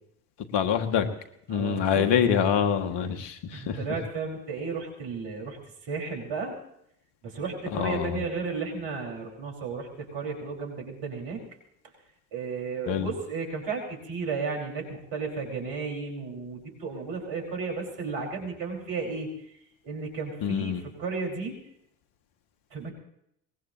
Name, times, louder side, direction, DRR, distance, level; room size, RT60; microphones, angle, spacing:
voice 1, 0.5-1.0 1.5-3.3 3.7-3.8 7.7-8.2 12.9-13.1 20.4-20.8, left 8 dB, 65° left, 7 dB, 2.1 m, -25 dB
voice 2, 1.5-2.1 3.5-5.6 5.8-6.5 7.2-11.4 12.3-19.3 19.8-21.5 22.7-22.9, right 4 dB, 65° right, 1 dB, 5.1 m, -33 dB
22.5 x 20.5 x 3.0 m, 0.75 s
hypercardioid pair, 60°, 45 cm